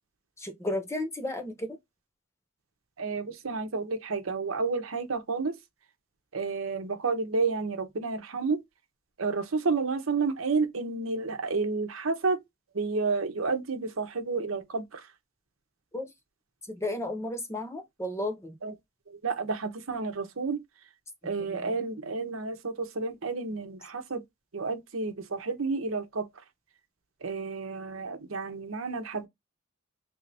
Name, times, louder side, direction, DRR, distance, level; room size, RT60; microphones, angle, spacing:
voice 1, 0.4-1.8 15.9-16.1 16.7-18.5 21.5-21.6, left 1 dB, 15° left, 0.8 m, -33 dB
voice 2, 3.0-5.5 6.3-8.6 9.2-12.4 12.7-15.0 18.6-18.7 19.1-20.6 21.2-24.2 24.5-26.3 27.2-29.3, right 4 dB, 80° right, 0.8 m, -30 dB
3.4 x 2.7 x 3.3 m
head